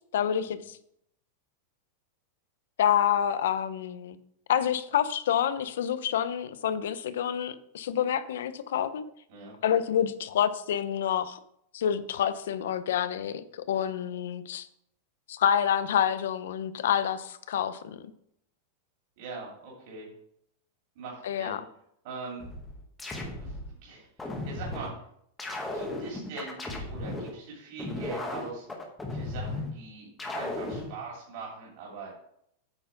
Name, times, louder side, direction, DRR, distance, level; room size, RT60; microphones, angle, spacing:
voice 1, 0.1-0.8 2.8-4.2 4.5-9.0 9.6-11.4 11.7-14.7 15.3-18.1 21.2-21.6, left 9 dB, 75° left, 13 dB, 0.7 m, -28 dB
voice 2, 19.2-20.1 20.9-21.5 22.0-22.4 23.2-24.9 25.7-28.6 29.1-30.1 30.3-32.1, right 4 dB, 50° right, -3 dB, 2.7 m, -42 dB
sound 1, 22.4-23.7 24.2-24.9 25.4-27.3 27.8-29.7 30.2-30.9, left 2 dB, 5° left, 1.0 m, -35 dB
8.8 x 4.5 x 5.8 m, 0.72 s
supercardioid pair, 175°, 0 cm